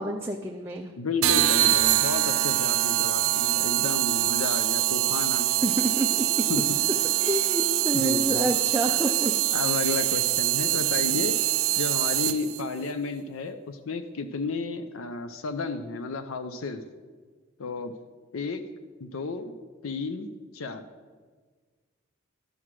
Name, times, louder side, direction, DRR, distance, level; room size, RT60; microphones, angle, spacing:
voice 1, 0.0-0.9 5.6-6.5 7.2-9.3 9.9-10.0, right 1 dB, 10° right, 2 dB, 0.4 m, -28 dB
voice 2, 1.0-5.7 6.5-6.6 7.9-8.5 9.5-11.4 11.8-16.8 17.6-17.9 18.3-18.6 19.0-19.5 19.8-20.3 20.5-20.8, left 3 dB, 75° left, 9 dB, 0.6 m, -32 dB
sound 1, 1.2-12.6, right 15 dB, 75° right, 0.4 m, -24 dB
12.0 x 5.9 x 4.7 m, 1.5 s
head